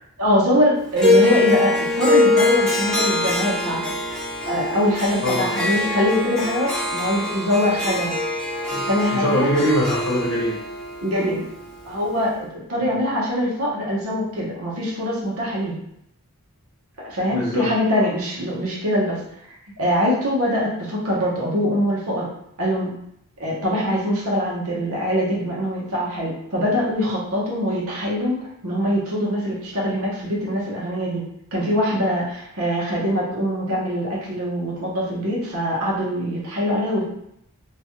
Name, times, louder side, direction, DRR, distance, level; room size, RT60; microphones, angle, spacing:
voice 1, 0.2-3.9 4.4-8.2 8.9-9.5 11.0-11.4 11.8-15.7 17.0-19.2 19.8-22.3 22.6-22.9 23.4-28.4 28.6-31.2 31.5-37.0, equal, 70° right, -4 dB, 1.0 m, -23 dB
Harp, 1.0-12.3, left 2 dB, 5° left, 0.7 m, -23 dB
voice 2, 5.2-5.9 8.7-10.6 12.9-13.0 17.3-17.7, equal, 75° left, -3 dB, 0.9 m, -23 dB
2.9 x 2.4 x 3.0 m, 0.76 s
head